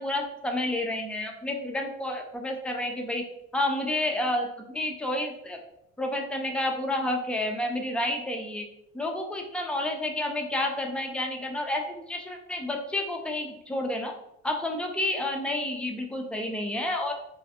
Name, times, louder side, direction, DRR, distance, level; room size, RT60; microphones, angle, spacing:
voice 1, 0.0-3.2 3.5-5.6 6.0-8.7 8.9-14.1 14.4-17.1, left 1 dB, 5° left, 2 dB, 0.3 m, -30 dB
2.2 x 2.1 x 2.7 m, 0.78 s
supercardioid pair, 70°, 34 cm